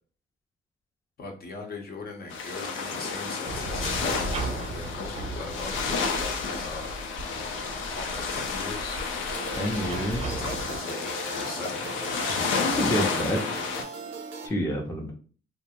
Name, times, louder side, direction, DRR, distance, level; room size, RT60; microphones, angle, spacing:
voice 1, 1.2-5.9 6.4-7.0 7.9-9.0 10.2-12.4, left 3 dB, 50° left, 2 dB, 0.7 m, -40 dB
sound 1, 2.3-13.8, left 4 dB, 85° left, 0.6 m, -31 dB
sound 2, 3.5-10.8, right 2 dB, 35° right, 0.5 m, -37 dB
sound 3, 9.3-14.5, right 3 dB, 85° right, 0.8 m, -39 dB
voice 2, 9.5-10.3 12.8-13.4 14.4-15.1, equal, 15° left, 0 dB, 0.6 m, -28 dB
2.3 x 2.1 x 2.9 m, 0.41 s
cardioid pair, 90°, 20 cm